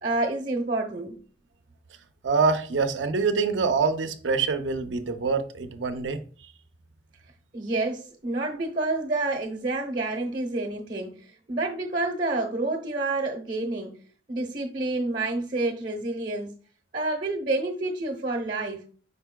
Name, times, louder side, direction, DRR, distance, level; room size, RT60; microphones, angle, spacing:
voice 1, 0.0-1.2 7.5-14.0 14.3-16.5 16.9-18.8, right 2 dB, 45° right, 0.9 m, -29 dB
voice 2, 2.2-6.2, right 4 dB, 85° right, 0.6 m, -25 dB
5.2 x 4.5 x 2.2 m
head